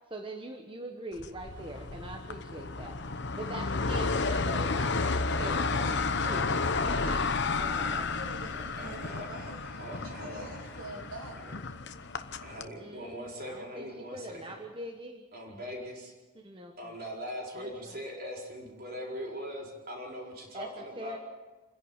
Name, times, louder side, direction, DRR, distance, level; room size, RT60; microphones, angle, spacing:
voice 1, 0.1-3.0 3.3-5.7 6.2-6.6 6.9-7.2 7.5-8.1 12.8-15.2 16.3-16.9 17.5-18.0 20.5-21.2, right 2 dB, 25° right, 2 dB, 1.3 m, -42 dB
sound 1, 1.2-12.7, left 4 dB, 50° left, 1.0 m, -32 dB
voice 2, 5.4-6.6 6.9-7.2 7.6-9.6 10.0-11.4, right 1 dB, 80° right, 1 dB, 3.0 m, -45 dB
voice 3, 8.5-11.0 11.4-11.5 12.4-14.6 15.3-16.1 16.8-21.2, equal, 45° right, 0 dB, 4.7 m, -41 dB
28.0 x 11.0 x 8.9 m, 1.2 s
head